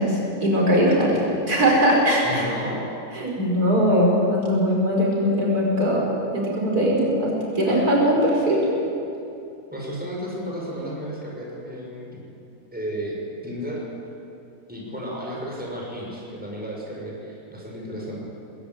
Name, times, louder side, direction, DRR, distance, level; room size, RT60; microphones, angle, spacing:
voice 1, 0.0-2.4 3.1-6.0 6.3-8.7, equal, 80° right, -3 dB, 5.6 m, -20 dB
voice 2, 2.2-2.8 9.7-12.2 12.7-13.2 13.4-13.8 14.7-18.2, equal, 5° right, -3 dB, 5.5 m, -33 dB
20.5 x 16.5 x 9.3 m, 2.7 s
omnidirectional pair, 1.6 m